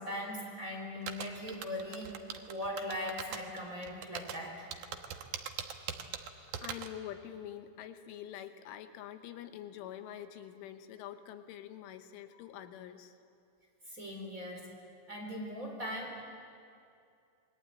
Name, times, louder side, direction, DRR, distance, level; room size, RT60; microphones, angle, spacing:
voice 1, 0.0-2.2 2.5-4.7 13.9-14.7 15.1-16.2, left 1 dB, 20° right, -1 dB, 3.9 m, -40 dB
sound 1, 1.1-6.9, right 8 dB, 80° right, 1.8 m, -40 dB
voice 2, 6.4-13.2, left 11 dB, 85° left, 8 dB, 3.7 m, -46 dB
27.0 x 21.5 x 9.2 m, 2.5 s
omnidirectional pair, 5.5 m